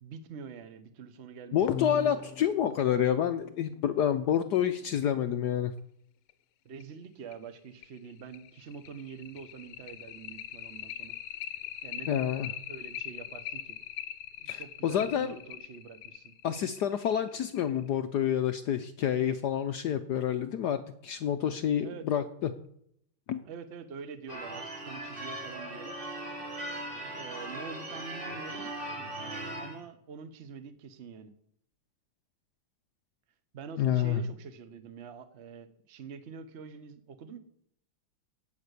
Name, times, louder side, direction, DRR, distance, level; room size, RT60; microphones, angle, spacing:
voice 1, 0.0-1.7 6.6-11.2 11.8-12.3 12.7-13.8 14.4-16.3 21.8-22.0 23.5-26.0 27.0-28.7 29.6-31.3 33.5-37.4, right 6 dB, 40° right, 10 dB, 1.0 m, -45 dB
voice 2, 1.5-5.7 12.1-12.5 14.5-15.4 16.4-22.5 23.3-23.4 33.8-34.2, left 9 dB, 70° left, 10 dB, 1.0 m, -28 dB
sound 1, 1.7-4.8 6.3-6.4 6.8-6.9 7.3-7.4 7.8-17.9, left 10 dB, 85° left, 1.6 m, -41 dB
Church bell / Car / Alarm, 24.3-29.8, right 1 dB, 25° right, 2.6 m, -39 dB
16.0 x 5.9 x 8.2 m, 0.71 s
omnidirectional pair, 2.3 m